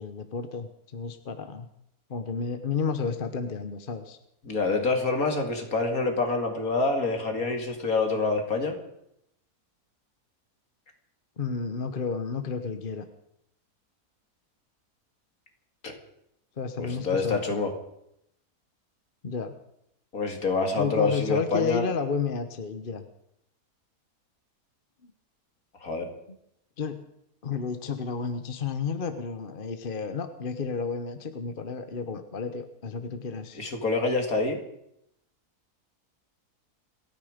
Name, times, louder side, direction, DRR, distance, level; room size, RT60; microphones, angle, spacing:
voice 1, 0.0-1.7 2.1-4.2 11.4-13.1 16.6-17.7 19.2-19.5 20.8-23.1 25.0-25.1 26.8-27.0 27.4-33.6, left 5 dB, 40° left, 8 dB, 1.1 m, -31 dB
voice 2, 4.4-8.8 15.8-15.9 16.8-17.7 20.1-21.8 25.8-26.1 33.5-34.6, left 3 dB, 65° left, 4 dB, 2.8 m, -26 dB
29.0 x 9.7 x 5.1 m, 0.78 s
omnidirectional pair, 1.7 m